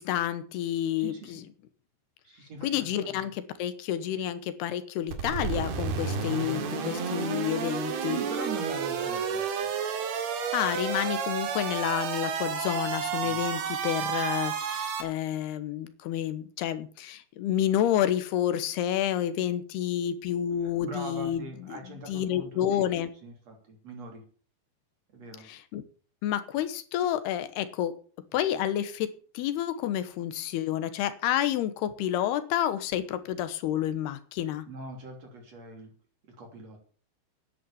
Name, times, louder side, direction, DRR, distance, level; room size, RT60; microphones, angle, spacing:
voice 1, 0.0-1.4 2.6-8.2 10.5-21.8 22.1-23.1 25.4-25.8 26.2-28.0 28.3-34.7, left 11 dB, 85° left, 12 dB, 3.1 m, -29 dB
voice 2, 0.9-1.5 2.2-3.3 7.9-9.7 13.2-13.5 20.6-22.9 23.2-24.2 25.1-25.5 34.7-35.9 36.3-36.8, right 3 dB, 45° right, 2 dB, 4.1 m, -42 dB
sound 1, 5.1-15.0, right 6 dB, 80° right, 4.0 m, -31 dB
11.0 x 9.8 x 7.2 m, 0.43 s
omnidirectional pair, 4.5 m